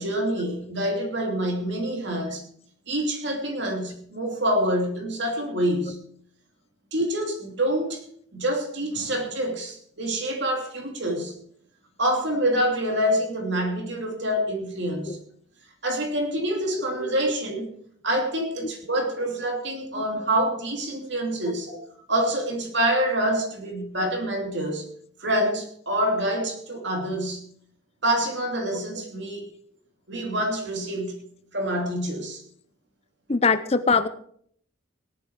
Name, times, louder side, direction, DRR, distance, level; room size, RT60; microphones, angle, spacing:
voice 1, 0.0-2.4 2.9-6.0 6.9-8.0 8.3-11.3 12.0-15.2 15.8-17.7 18.0-21.8 22.1-24.9 25.2-27.4 28.0-29.5 30.1-31.2 31.5-32.4, right 1 dB, 55° right, 2 dB, 3.0 m, -26 dB
voice 2, 33.3-34.1, left 4 dB, 30° left, 12 dB, 0.6 m, -21 dB
17.5 x 11.0 x 4.7 m, 0.62 s
head